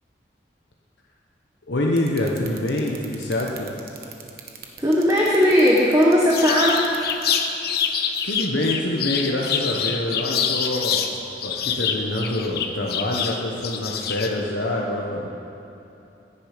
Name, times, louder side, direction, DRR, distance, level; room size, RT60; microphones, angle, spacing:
voice 1, 1.7-3.7 8.2-11.1 11.4-15.3, left 1 dB, 80° left, -2 dB, 1.1 m, -26 dB
sound 1, 2.0-7.4, right 9 dB, 55° right, 1.2 m, -39 dB
voice 2, 4.8-7.0, equal, 20° right, -4 dB, 1.1 m, -17 dB
Bird chirping loudly, 6.3-11.1 11.4-14.3, left 7 dB, 60° left, 0.8 m, -25 dB
15.0 x 10.0 x 5.1 m, 3.0 s
head